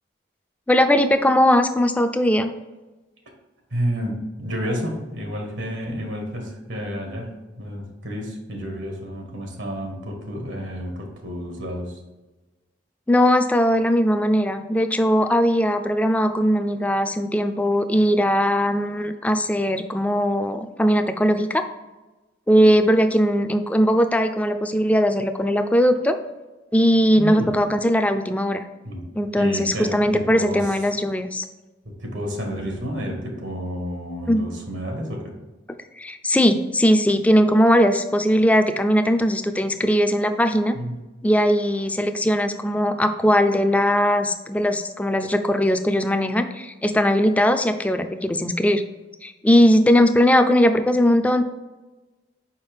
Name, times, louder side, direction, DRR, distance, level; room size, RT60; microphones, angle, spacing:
voice 1, 0.7-2.5 13.1-21.6 22.5-26.2 26.7-28.6 29.1-31.4 34.3-34.4 36.0-40.8 41.2-48.8 49.2-51.4, equal, 10° left, 7 dB, 0.3 m, -19 dB
voice 2, 3.7-7.3 7.6-12.0 27.1-27.5 28.8-29.1 29.3-30.7 32.0-35.3 40.7-41.0, equal, 80° right, 2 dB, 1.4 m, -30 dB
5.5 x 4.8 x 3.5 m, 1.1 s
head